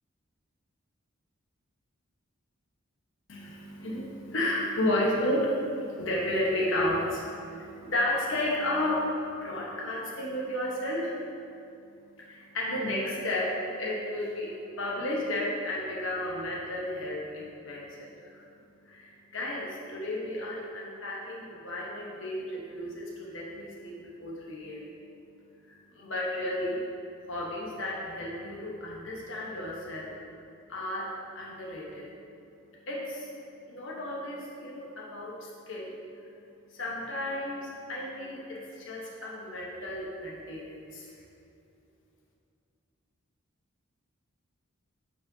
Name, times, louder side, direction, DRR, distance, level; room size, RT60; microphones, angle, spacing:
voice 1, 3.3-41.1, left 1 dB, 60° left, -4 dB, 1.2 m, -33 dB
8.4 x 4.8 x 2.7 m, 2.6 s
head